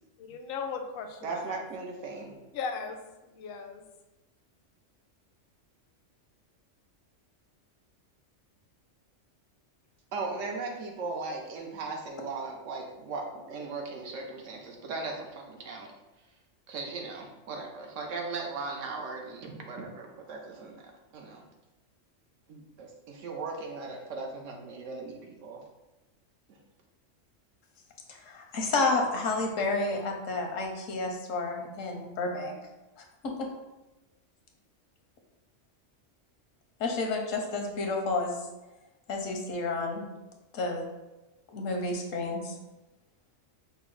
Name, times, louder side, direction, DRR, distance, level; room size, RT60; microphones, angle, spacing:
voice 1, 0.2-1.6 2.5-3.0 3.3-3.8, left 5 dB, 65° left, 5 dB, 0.6 m, -37 dB
voice 2, 1.2-2.4 10.1-15.9 16.7-21.4 22.5-25.6, right 3 dB, 80° right, 1 dB, 1.1 m, -38 dB
voice 3, 28.1-32.6 33.0-33.5 36.8-38.4 39.1-40.1 40.5-40.8 41.5-42.5, left 3 dB, 85° left, 2 dB, 1.1 m, -30 dB
5.3 x 2.1 x 3.9 m, 1.0 s
omnidirectional pair, 1.3 m